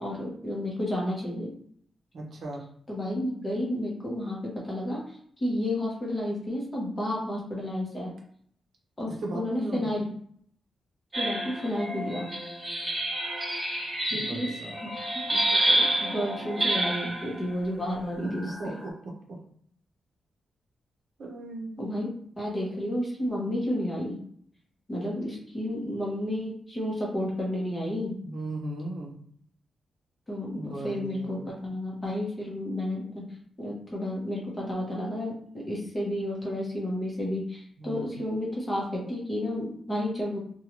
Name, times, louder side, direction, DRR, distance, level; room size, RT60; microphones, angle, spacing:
voice 1, 0.0-1.5 2.9-5.0 5.4-8.1 9.0-10.1 11.2-12.3 14.1-14.5 14.8-14.9 15.3-18.8 21.8-22.1 22.3-24.2 24.9-28.2 30.3-33.2 33.6-40.4, left 1 dB, 20° left, -3 dB, 0.8 m, -31 dB
voice 2, 2.1-2.6 9.1-9.9 14.1-14.8 18.2-19.4 21.2-22.1 28.2-29.2 30.5-31.5 37.8-38.2, right 1 dB, 55° right, -1 dB, 0.7 m, -37 dB
sound 1, 11.1-17.3 18.2-18.8, right 1 dB, 20° right, 1.0 m, -29 dB
2.6 x 2.2 x 2.9 m, 0.62 s
wide cardioid pair, 155°, 0 cm